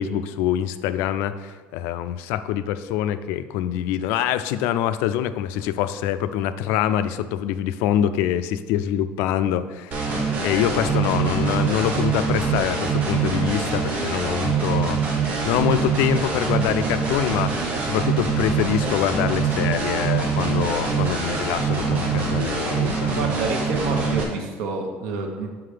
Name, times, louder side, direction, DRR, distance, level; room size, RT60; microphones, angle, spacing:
voice 1, 0.0-15.0 15.4-23.3, left 11 dB, 80° left, 12 dB, 0.4 m, -25 dB
sound 1, 9.9-24.2, right 5 dB, 35° right, 1.3 m, -24 dB
voice 2, 23.2-25.5, right 4 dB, 85° right, 3 dB, 1.1 m, -28 dB
5.8 x 5.6 x 5.0 m, 1.4 s
cardioid pair, 175°, 4 cm